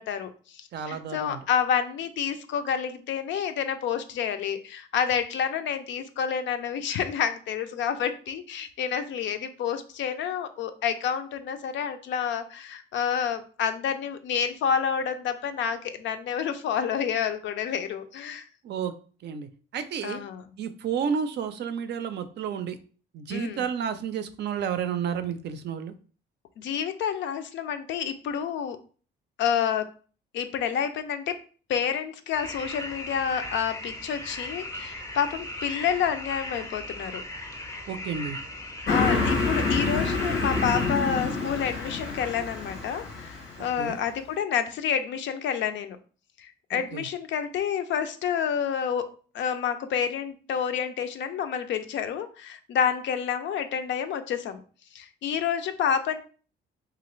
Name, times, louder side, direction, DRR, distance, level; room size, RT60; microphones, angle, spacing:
voice 1, 0.0-18.4 20.0-20.4 23.3-23.6 26.6-28.8 29.4-29.9 30.3-31.4 31.7-37.2 38.9-46.0 46.4-54.6 54.9-56.2, left 8 dB, 70° left, 9 dB, 0.4 m, -29 dB
voice 2, 0.7-1.4 18.6-18.9 19.2-20.2 20.6-22.8 23.1-25.9 37.9-38.4 43.8-44.0 46.7-47.1, right 7 dB, 60° right, 10 dB, 0.4 m, -31 dB
sound 1, 32.3-40.9, left 1 dB, 15° left, 0.5 m, -38 dB
Car passing by, 38.9-43.8, left 3 dB, 90° left, 0.9 m, -27 dB
3.1 x 2.4 x 3.0 m, 0.40 s
cardioid pair, 90°, 20 cm